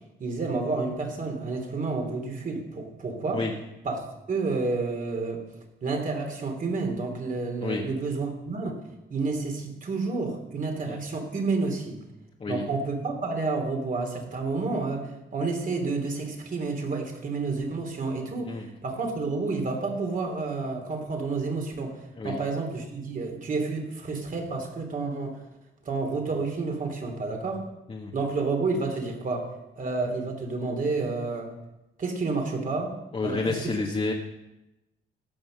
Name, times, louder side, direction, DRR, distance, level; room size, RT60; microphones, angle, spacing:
voice 1, 0.2-3.4 3.8-4.0 4.3-5.4 5.8-8.8 9.1-12.0 12.5-25.4 25.8-27.6 28.1-29.5 29.8-31.5 32.0-33.0 33.2-33.7, right 3 dB, 45° right, 3 dB, 2.9 m, -30 dB
voice 2, 33.1-34.1, left 3 dB, 30° left, -1 dB, 1.5 m, -30 dB
16.0 x 6.0 x 6.3 m, 0.94 s
cardioid pair, 90°, 20 cm